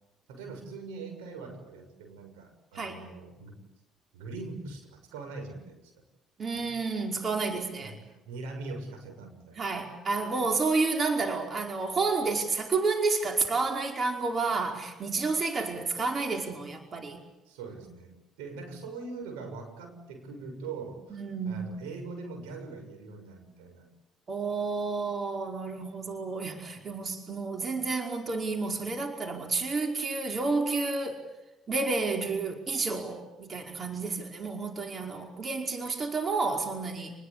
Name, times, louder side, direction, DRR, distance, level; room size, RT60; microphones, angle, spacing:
voice 1, 0.3-3.6 4.1-5.9 6.5-6.7 7.8-9.7 17.5-23.9, right 3 dB, 85° right, 5 dB, 7.0 m, -42 dB
voice 2, 6.4-7.9 9.6-17.2 21.1-21.7 24.3-31.2 31.7-37.1, right 4 dB, 40° right, 3 dB, 5.2 m, -30 dB
30.0 x 21.0 x 8.6 m, 0.97 s
hypercardioid pair, 60°, 0 cm